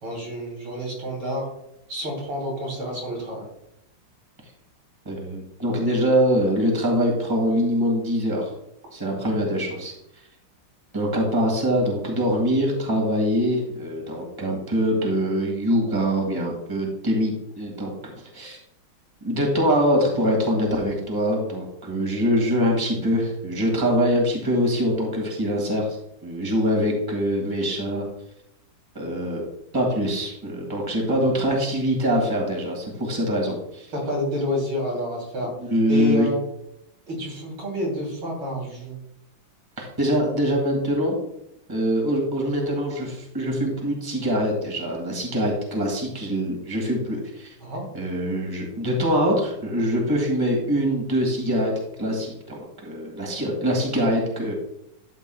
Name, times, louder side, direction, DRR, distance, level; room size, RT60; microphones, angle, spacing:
voice 1, 0.0-1.5 1.9-3.5 33.9-35.5 35.9-36.4 37.1-39.0 47.6-47.8, left 1 dB, 85° right, -2 dB, 3.9 m, -29 dB
voice 2, 5.1-8.5 8.9-9.9 10.9-17.9 18.3-18.6 19.2-26.0 26.2-28.0 28.9-29.4 29.7-33.9 35.6-36.3 39.8-41.2 41.7-47.5 47.9-51.7 52.0-54.5, equal, 10° right, 0 dB, 1.9 m, -23 dB
12.0 x 8.0 x 2.3 m, 0.81 s
omnidirectional pair, 2.2 m